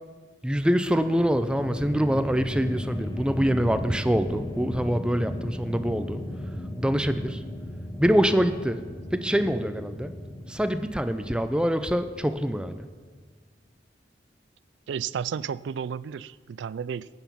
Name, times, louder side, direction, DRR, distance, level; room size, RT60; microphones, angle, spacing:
voice 1, 0.4-6.2 6.8-7.4 8.0-10.1 10.5-12.8, equal, 5° right, 0.4 m, -25 dB
sound 1, 1.0-13.2, left 1 dB, 20° left, 0.9 m, -36 dB
voice 2, 14.9-17.1, right 7 dB, 85° right, 0.3 m, -32 dB
11.5 x 9.1 x 5.8 m
head